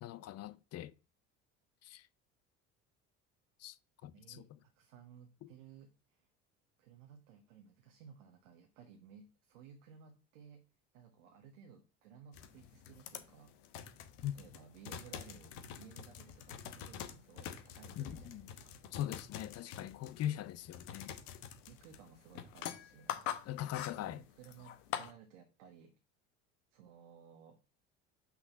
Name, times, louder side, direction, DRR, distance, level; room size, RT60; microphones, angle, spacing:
voice 1, 0.0-0.9 1.8-2.0 3.6-3.8 4.0-4.4 14.2-14.3 18.0-18.4 18.9-21.1 23.5-24.2, left 12 dB, 40° left, 0.5 m, -41 dB
voice 2, 4.1-6.3 6.8-10.7 10.9-13.5 14.3-18.8 21.7-25.9 26.7-27.6, right 7 dB, 75° right, 1.0 m, -58 dB
sound 1, 12.3-25.1, left 10 dB, 70° left, 0.9 m, -46 dB
5.9 x 3.8 x 5.7 m
hypercardioid pair, 65°, 38 cm